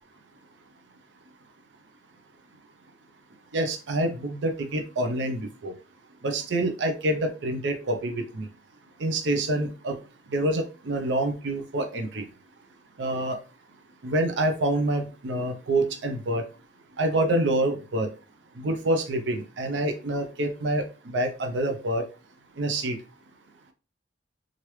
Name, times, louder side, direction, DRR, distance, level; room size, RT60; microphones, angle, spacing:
voice 1, 3.5-5.7 6.2-8.4 9.0-10.0 10.3-12.2 13.0-13.4 14.0-16.4 17.0-18.1 18.6-22.0 22.6-23.0, right 1 dB, 75° right, 5 dB, 0.5 m, -27 dB
3.1 x 2.5 x 3.0 m, 0.33 s
head